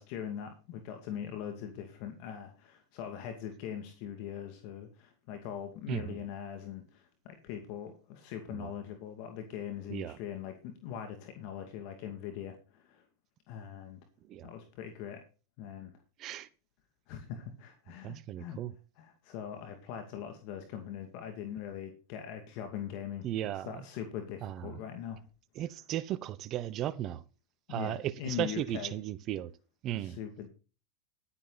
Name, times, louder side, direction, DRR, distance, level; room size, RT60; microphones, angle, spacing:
voice 1, 0.0-13.0 13.5-14.0 14.4-15.2 15.6-15.9 17.1-18.6 19.0-25.2 27.7-28.9 30.0-30.5, left 9 dB, 55° left, 2.4 m, -41 dB
voice 2, 5.9-6.2 8.5-8.7 9.9-10.2 14.3-14.5 16.2-16.5 18.0-18.7 23.2-23.7 24.4-24.7 25.6-27.2 27.7-29.5 29.8-30.2, right 12 dB, 40° right, 0.9 m, -36 dB
12.0 x 9.8 x 4.1 m
hypercardioid pair, 110°, 0 cm